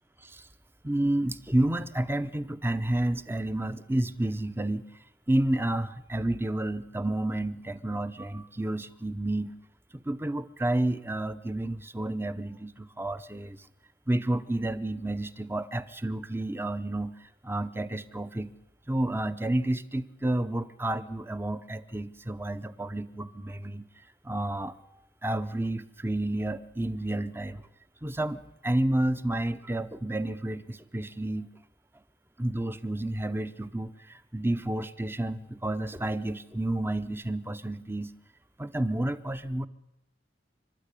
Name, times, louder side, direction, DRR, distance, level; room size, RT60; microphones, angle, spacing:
voice 1, 0.8-4.8 5.3-9.5 9.9-13.7 14.1-18.5 18.9-23.9 24.2-24.8 25.2-27.7 28.0-31.5 32.4-38.1 38.6-39.7, right 1 dB, 10° right, 13 dB, 0.7 m, -30 dB
27.5 x 13.0 x 10.0 m, 0.90 s
head